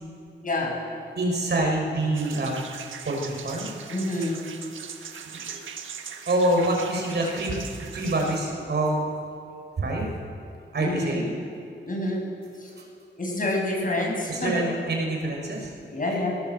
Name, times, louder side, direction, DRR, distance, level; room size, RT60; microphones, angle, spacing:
voice 1, 0.4-0.7 3.9-4.4 10.8-11.3 11.9-12.2 12.6-12.7 13.2-14.6 15.9-16.3, left 1 dB, 45° left, -1 dB, 7.9 m, -27 dB
voice 2, 1.2-2.5 3.0-3.7 5.3-5.6 6.3-9.0 9.8-10.1 10.7-11.3 12.8-12.9 14.3-15.7, right 1 dB, 60° right, 0 dB, 6.2 m, -26 dB
sound 1, 2.1-8.4, right 7 dB, 85° right, 1.6 m, -40 dB
20.0 x 18.5 x 7.9 m, 2.4 s
cardioid pair, 65°, 20 cm